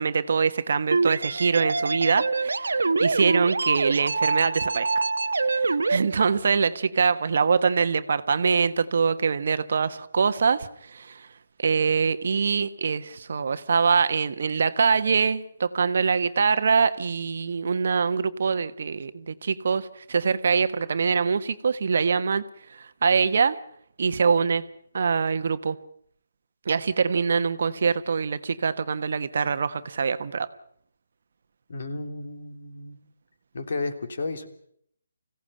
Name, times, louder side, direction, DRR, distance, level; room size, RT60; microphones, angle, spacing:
voice 1, 0.0-5.0 5.4-11.3 11.6-22.4 22.7-23.6 24.0-24.6 24.9-25.8 26.6-30.5, right 5 dB, 55° right, 1.2 m, -24 dB
sound 1, 0.9-6.0, right 3 dB, 85° right, 1.1 m, -25 dB
voice 2, 31.7-33.0 33.5-34.5, left 3 dB, 55° left, 3.1 m, -33 dB
25.0 x 16.5 x 8.7 m
hypercardioid pair, 165°, 0 cm